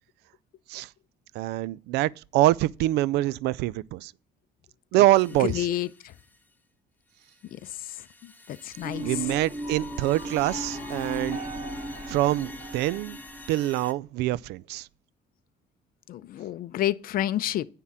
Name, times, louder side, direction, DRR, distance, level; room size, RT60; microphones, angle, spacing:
voice 1, 1.3-4.1 4.9-5.7 9.0-11.4 12.1-13.2 13.5-14.9, right 16 dB, 85° right, 0.4 m, -25 dB
sound 1, 5.1-6.6 7.1-13.9, left 2 dB, 10° left, 1.0 m, -49 dB
voice 2, 5.5-6.1 8.2-9.1 16.1-17.7, left 12 dB, 60° left, 0.5 m, -29 dB
sound 2, 8.8-13.8, equal, 15° right, 3.2 m, -36 dB
9.7 x 3.8 x 7.2 m
cardioid pair, 110°, 17 cm